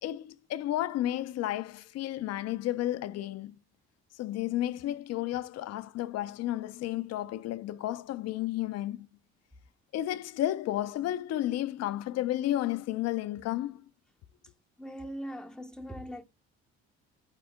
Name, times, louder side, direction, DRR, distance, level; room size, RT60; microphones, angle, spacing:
voice 1, 0.0-3.5 4.2-9.1 9.9-13.8, left 13 dB, 55° left, 0.5 m, -32 dB
voice 2, 14.4-16.2, equal, ahead, 0.5 m, -41 dB
4.3 x 2.9 x 3.5 m
supercardioid pair, 65°, 31 cm